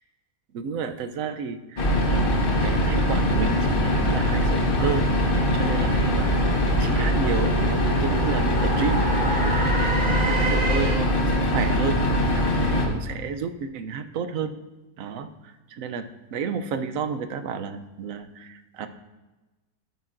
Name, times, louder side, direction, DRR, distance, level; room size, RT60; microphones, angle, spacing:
voice 1, 0.5-5.1 5.5-6.3 6.8-9.1 9.5-9.8 10.2-12.0 12.3-14.5 15.0-18.9, right 6 dB, 65° right, 9 dB, 1.0 m, -31 dB
sound 1, 1.8-12.9, equal, 40° left, 1.1 m, -22 dB
sound 2, 5.4-11.2, right 2 dB, 45° right, 2.4 m, -31 dB
13.5 x 8.1 x 2.6 m, 1.1 s
omnidirectional pair, 1.7 m